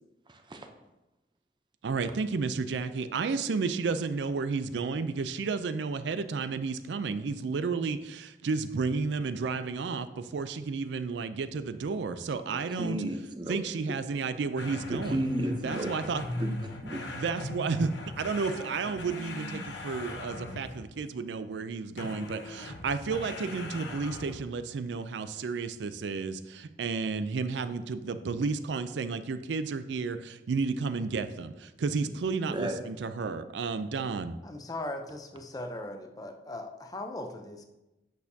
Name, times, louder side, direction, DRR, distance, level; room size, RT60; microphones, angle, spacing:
voice 1, 0.3-0.7 12.7-13.6 14.9-15.9 16.3-16.5 16.8-17.0 32.5-32.8, right 1 dB, 25° right, 5 dB, 0.6 m, -33 dB
voice 2, 1.8-13.0 13.5-15.2 15.6-16.2 17.1-34.4, right 4 dB, 80° right, 11 dB, 0.4 m, -32 dB
sound 1, 14.6-21.0 22.0-24.6, left 2 dB, 90° left, 0.9 m, -39 dB
voice 3, 34.4-37.6, left 1 dB, 20° left, 5 dB, 0.6 m, -39 dB
8.2 x 6.3 x 2.7 m, 0.99 s
head